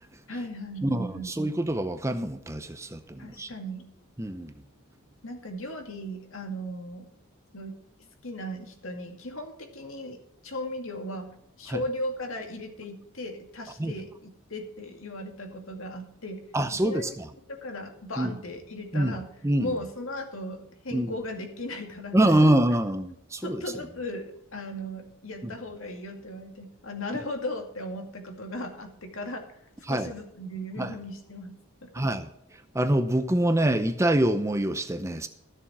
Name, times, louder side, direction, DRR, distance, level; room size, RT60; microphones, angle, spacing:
voice 1, 0.3-1.3 3.2-3.9 5.2-7.1 7.5-7.8 8.2-17.1 17.5-19.3 19.6-22.3 23.4-29.5 29.9-32.1, left 1 dB, 70° left, 2.3 m, -37 dB
voice 2, 0.8-3.5 4.2-4.5 11.7-11.8 13.8-13.9 16.5-17.3 18.2-18.3 18.9-19.2 19.4-19.8 20.9-21.1 22.1-23.6 25.4-25.5 29.9-30.1 30.8-30.9 31.9-32.3 32.7-35.3, right 1 dB, 15° right, 0.6 m, -25 dB
13.5 x 7.1 x 6.1 m
head